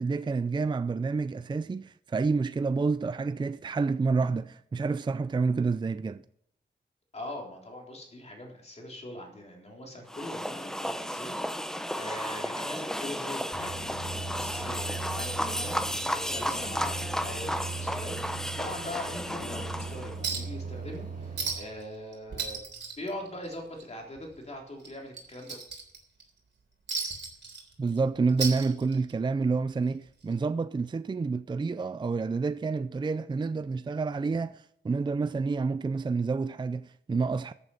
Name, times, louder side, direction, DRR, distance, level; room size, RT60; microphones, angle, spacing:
voice 1, 0.0-6.2 27.8-37.5, right 4 dB, 25° right, 0.4 m, -29 dB
voice 2, 7.1-11.7 11.9-15.8 16.2-22.6 23.0-25.6, left 1 dB, 35° left, 3.5 m, -42 dB
sound 1, 10.1-20.2, equal, 5° left, 0.7 m, -33 dB
sound 2, 13.5-21.5, right 4 dB, 45° right, 4.3 m, -39 dB
Chink clink, 20.2-20.6 20.9-21.0 21.4-21.8 22.1-23.8 24.2-24.3 24.8-26.2 26.9-28.0 28.3-29.2 30.3-30.4, right 5 dB, 65° right, 3.5 m, -35 dB
14.5 x 8.1 x 5.6 m
wide cardioid pair, 120°, 19 cm